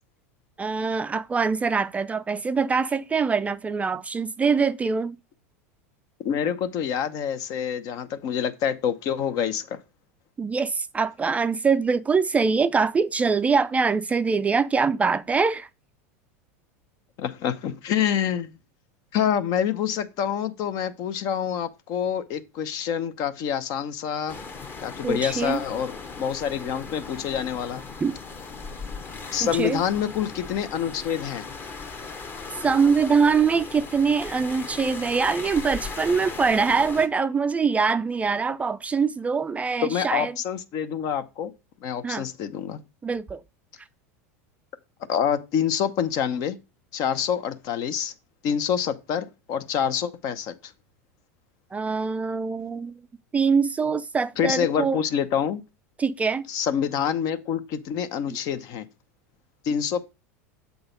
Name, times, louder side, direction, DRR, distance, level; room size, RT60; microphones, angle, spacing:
voice 1, 0.6-5.2 10.4-15.7 25.0-25.6 28.0-28.2 29.4-29.8 32.6-40.3 42.0-42.2 43.0-43.4 51.7-52.9 53.3-55.0 56.0-56.5, right 5 dB, 15° right, 0.3 m, -23 dB
voice 2, 6.2-9.8 17.2-18.6 19.1-24.4 24.8-27.8 29.3-31.5 39.8-41.5 41.8-42.8 45.1-46.6 46.9-48.1 48.4-50.7 54.4-55.6 56.5-58.9 59.6-60.1, left 8 dB, 50° left, 0.7 m, -27 dB
sound 1, 24.3-37.1, left 4 dB, 30° left, 1.1 m, -38 dB
7.0 x 4.0 x 5.0 m
hypercardioid pair, 100°, 8 cm